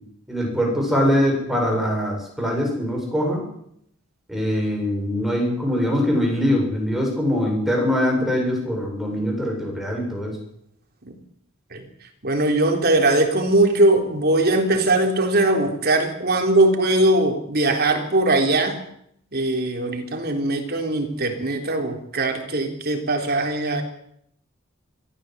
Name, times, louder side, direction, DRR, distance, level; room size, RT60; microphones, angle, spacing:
voice 1, 0.3-3.4 4.3-10.4, equal, ahead, -1 dB, 7.9 m, -22 dB
voice 2, 12.2-18.8 19.3-23.8, right 2 dB, 50° right, 4 dB, 3.6 m, -20 dB
22.5 x 15.5 x 8.1 m, 0.71 s
head